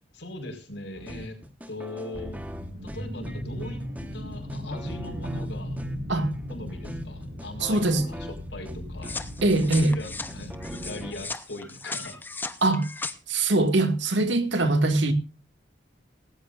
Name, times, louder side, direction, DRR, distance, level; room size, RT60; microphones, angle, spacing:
voice 1, 0.1-1.4 1.7-2.4 2.8-3.8 4.1-5.8 6.5-9.2 9.6-12.2, left 1 dB, 65° left, 5.2 m, -40 dB
sound 1, 0.9-11.1, equal, 10° right, 1.3 m, -40 dB
sound 2, 2.1-11.3, equal, 55° right, 6.8 m, -38 dB
voice 2, 7.6-8.0 9.4-9.9 12.6-12.9 13.3-15.1, right 2 dB, 75° right, 2.2 m, -22 dB
sound 3, 9.0-13.1, left 3 dB, 10° left, 0.8 m, -37 dB
18.0 x 16.5 x 2.6 m
head